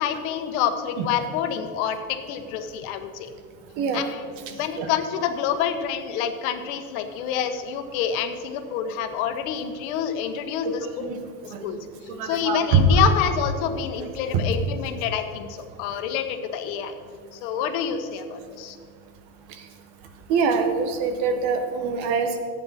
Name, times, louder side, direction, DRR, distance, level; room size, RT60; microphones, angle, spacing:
voice 1, 0.0-3.3 3.9-4.2 4.6-10.9 11.4-11.8 12.2-16.9 17.3-18.8, left 8 dB, 90° left, 8 dB, 1.2 m, -27 dB
voice 2, 4.5-4.9 10.6-10.7 11.0-11.2 11.5-11.7 12.1-12.8 20.3-22.4, right 6 dB, 65° right, 6 dB, 1.5 m, -24 dB
15.0 x 8.8 x 4.2 m, 2.1 s
cardioid pair, 170°, 41 cm